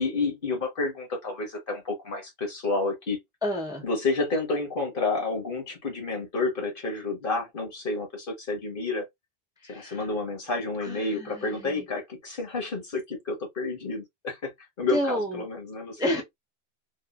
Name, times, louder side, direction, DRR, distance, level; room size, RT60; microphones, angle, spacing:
voice 1, 0.0-3.2 3.8-9.0 9.7-14.5 14.8-16.2, left 3 dB, 55° left, 1.2 m, -30 dB
voice 2, 3.4-3.8 9.6-10.1 10.8-11.8 14.9-15.4 16.0-16.2, left 1 dB, 5° right, 0.6 m, -30 dB
2.8 x 2.4 x 2.3 m
omnidirectional pair, 1.1 m